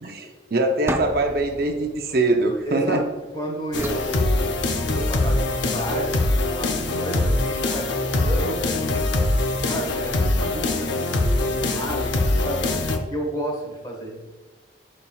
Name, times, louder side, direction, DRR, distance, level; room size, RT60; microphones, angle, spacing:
voice 1, 0.0-3.0, right 2 dB, 55° right, 4 dB, 0.7 m, -23 dB
sound 1, 0.9-3.1 3.7-5.1, right 1 dB, 15° right, 0.3 m, -34 dB
voice 2, 2.6-3.0 3.3-4.6 4.9-9.0 9.7-12.8 13.1-14.2, equal, 25° left, 0 dB, 1.4 m, -32 dB
sound 2, 3.7-13.0, left 2 dB, 75° left, 0.7 m, -23 dB
11.0 x 4.4 x 2.3 m, 1.3 s
head